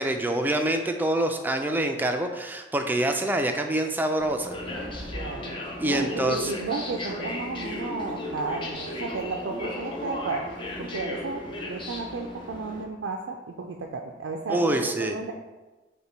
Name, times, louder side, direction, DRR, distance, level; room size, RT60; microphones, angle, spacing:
voice 1, 0.0-4.5 5.8-6.5 14.5-15.2, right 1 dB, 10° right, 5 dB, 0.3 m, -26 dB
sound 1, 4.2-12.8, left 1 dB, 25° left, 0.6 m, -35 dB
voice 2, 5.1-10.5 10.8-11.4 11.7-15.3, right 3 dB, 90° right, 1 dB, 0.4 m, -33 dB
5.5 x 2.2 x 4.4 m, 1.2 s
head